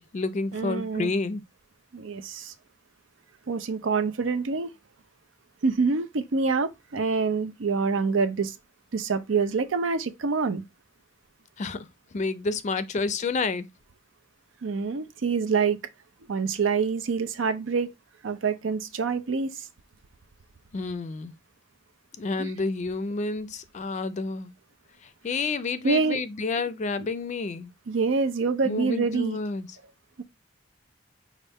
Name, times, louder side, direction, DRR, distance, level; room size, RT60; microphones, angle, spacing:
voice 1, 0.0-1.4 11.6-11.9 12.1-13.6 20.7-21.3 22.2-24.5 25.2-27.7 28.7-29.7, left 3 dB, 40° left, 0.4 m, -29 dB
voice 2, 0.5-1.1 1.9-2.5 3.5-4.7 5.6-8.5 8.9-10.6 14.6-15.8 16.3-17.9 18.2-19.7 22.4-22.5 25.8-26.2 27.9-29.4 30.2-30.3, right 4 dB, 90° right, 0.5 m, -26 dB
5.3 x 2.4 x 3.5 m
head